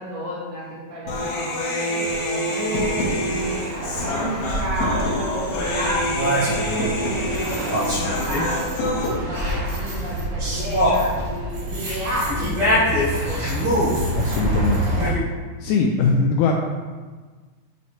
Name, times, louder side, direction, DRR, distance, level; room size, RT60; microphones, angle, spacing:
voice 1, 0.0-1.5 1.9-13.4, equal, 35° right, -8 dB, 1.4 m, -32 dB
Human voice, 1.1-9.1, left 1 dB, 60° left, 1.6 m, -26 dB
sound 1, 2.7-15.1, right 1 dB, 60° right, 3.4 m, -29 dB
sound 2, 6.1-6.9 7.3-8.8 9.0-15.2, equal, 75° right, 3.9 m, -25 dB
voice 2, 14.2-15.0 15.6-16.5, left 5 dB, 90° left, 0 dB, 1.8 m, -21 dB
8.6 x 3.0 x 4.3 m, 1.4 s
omnidirectional pair, 4.2 m